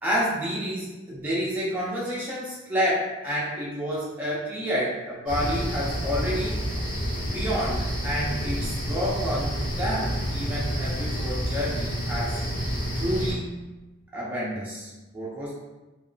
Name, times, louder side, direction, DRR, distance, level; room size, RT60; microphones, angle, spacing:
voice 1, 0.0-6.6 7.3-12.4 12.9-13.6 14.1-15.5, equal, 10° right, -8 dB, 0.5 m, -29 dB
sound 1, 5.3-13.3, equal, 40° left, 0.8 m, -29 dB
2.9 x 2.1 x 2.4 m, 1.1 s
head